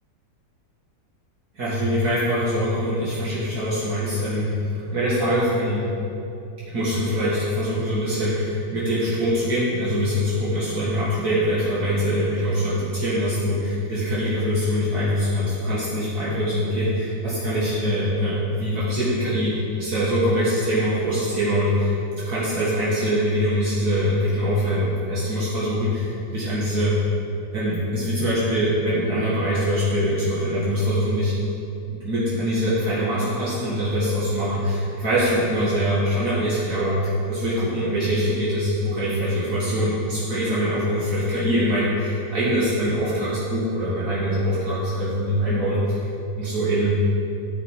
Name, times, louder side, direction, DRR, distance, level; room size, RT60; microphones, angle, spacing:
voice 1, 1.5-4.5 4.9-5.9 6.7-21.9 22.3-27.0 27.5-31.4 31.9-46.1 46.4-47.0, equal, 60° right, -9 dB, 2.3 m, -23 dB
14.0 x 5.3 x 4.7 m, 2.7 s
omnidirectional pair, 1.9 m